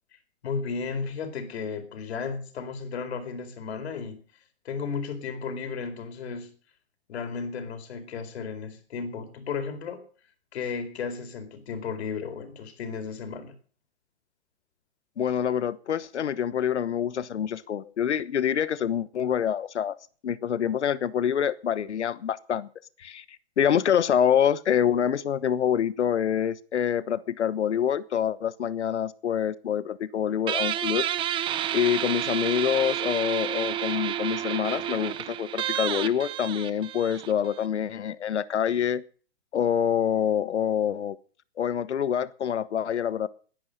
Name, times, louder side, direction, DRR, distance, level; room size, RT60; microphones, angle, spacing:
voice 1, 0.4-4.2 4.6-6.5 7.1-10.0 10.5-13.5, left 5 dB, 70° left, 9 dB, 4.3 m, -34 dB
voice 2, 15.2-20.0 20.2-22.7 23.0-23.2 23.6-31.4 31.7-39.0 39.5-41.2 41.6-43.3, left 9 dB, 85° left, 17 dB, 1.2 m, -26 dB
Guitar, 30.5-37.7, right 11 dB, 15° right, 0.6 m, -30 dB
18.5 x 10.0 x 6.6 m, 0.43 s
hypercardioid pair, 140°, 33 cm